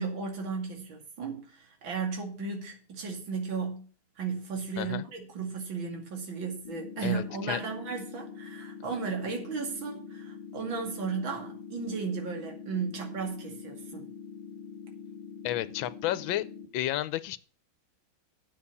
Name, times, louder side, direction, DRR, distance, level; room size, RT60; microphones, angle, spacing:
voice 1, 0.0-3.9 4.2-14.1, right 5 dB, 70° right, 3.1 m, -35 dB
sound 1, 6.6-16.7, left 6 dB, 15° left, 3.3 m, -44 dB
voice 2, 7.0-7.6 15.4-16.5 16.7-17.4, left 13 dB, 75° left, 1.4 m, -31 dB
9.6 x 7.1 x 6.8 m
omnidirectional pair, 2.2 m